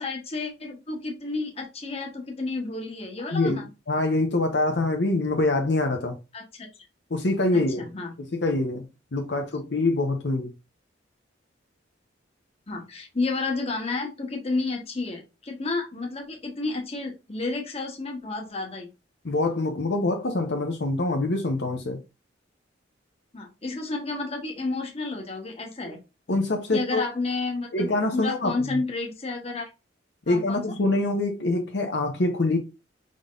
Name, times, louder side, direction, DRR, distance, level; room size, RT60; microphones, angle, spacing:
voice 1, 0.0-3.7 6.3-6.7 7.5-8.1 12.7-18.9 23.3-26.0 26.7-29.7 30.3-30.7, left 3 dB, 35° left, 1.1 m, -31 dB
voice 2, 3.9-6.1 7.1-7.9 8.2-8.8 9.1-10.5 19.2-22.0 26.3-27.0 27.7-28.8 30.3-32.6, left 2 dB, 65° left, 0.8 m, -25 dB
5.2 x 3.7 x 2.4 m
head